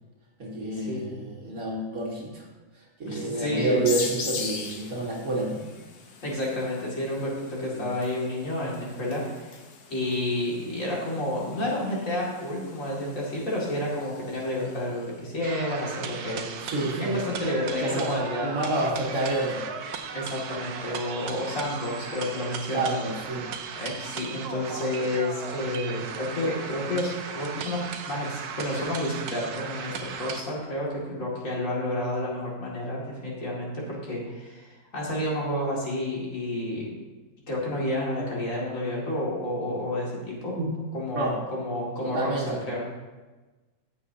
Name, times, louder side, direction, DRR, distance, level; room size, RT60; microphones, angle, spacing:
voice 1, 0.4-2.5 3.0-5.6 7.7-7.9 16.6-17.2 17.8-19.6 22.7-23.5 40.6-40.7 41.2-41.4 42.0-42.6, right 2 dB, 65° right, -3 dB, 2.2 m, -29 dB
voice 2, 3.1-3.8 6.2-9.6 9.9-16.5 16.9-18.5 20.1-23.0 23.7-36.9 37.5-40.6 40.9-42.8, left 1 dB, 55° left, -4 dB, 2.7 m, -30 dB
sound 1, 3.9-15.2, left 5 dB, 80° left, 1.5 m, -41 dB
sound 2, 15.4-30.4, right 6 dB, 85° right, 1.3 m, -37 dB
15.0 x 6.9 x 2.8 m, 1.2 s
omnidirectional pair, 1.6 m